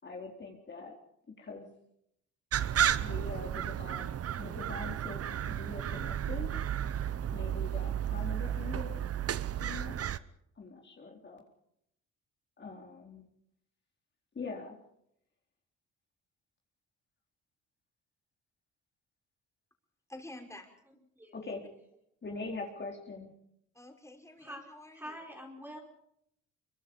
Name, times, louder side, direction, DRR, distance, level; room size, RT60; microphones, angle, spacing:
voice 1, 0.0-1.0 1.4-1.7 3.0-4.1 4.4-6.6 7.3-9.0 9.6-10.0 10.6-11.4 12.6-13.2 14.3-14.8 21.3-21.6 22.2-23.3, left 3 dB, 35° left, 0 dB, 4.1 m, -43 dB
sound 1, 2.5-10.2, right 10 dB, 50° right, 1.0 m, -33 dB
voice 2, 20.1-20.7 21.5-21.6 23.7-25.2, left 1 dB, 10° left, 2 dB, 5.9 m, -49 dB
voice 3, 24.9-25.8, equal, 5° right, 1 dB, 4.7 m, -45 dB
25.0 x 24.5 x 5.5 m, 0.75 s
cardioid pair, 90°, 30 cm